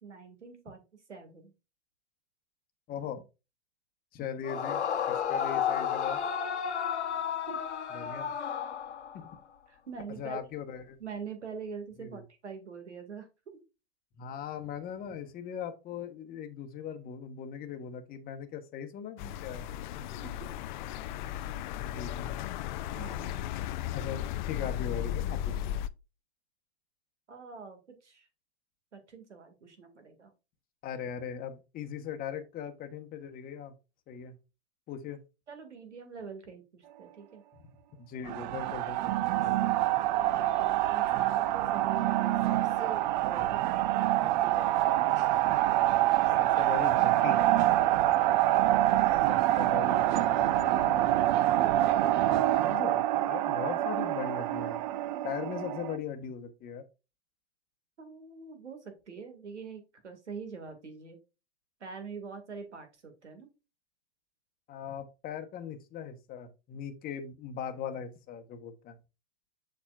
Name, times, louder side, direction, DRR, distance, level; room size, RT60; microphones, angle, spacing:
voice 1, 0.0-1.5 7.5-7.6 9.7-10.4 11.0-13.6 20.2-20.6 22.9-23.4 27.3-28.3 28.9-30.3 35.5-37.4 40.1-43.6 44.2-45.3 47.7-48.2 58.0-61.2 61.8-63.5, right 5 dB, 90° right, 2.2 m, -44 dB
voice 2, 2.9-3.2 4.1-4.8 5.1-6.2 7.9-8.3 9.1-9.3 10.2-11.0 12.0-12.2 14.2-19.7 19.9-20.3 21.7-22.3 23.9-25.8 30.8-33.7 34.1-34.3 34.9-35.2 38.0-39.6 43.4-43.5 46.6-47.4 49.5-51.1 52.6-54.8 55.2-56.8 64.7-69.0, left 7 dB, 25° left, 1.1 m, -39 dB
Yell / Screaming, 4.4-9.3, left 8 dB, 80° left, 1.1 m, -32 dB
sound 1, 19.2-25.9, left 11 dB, 45° left, 0.4 m, -35 dB
sound 2, 38.3-56.0, right 14 dB, 45° right, 0.5 m, -26 dB
7.0 x 6.0 x 2.4 m
hypercardioid pair, 115°, 34 cm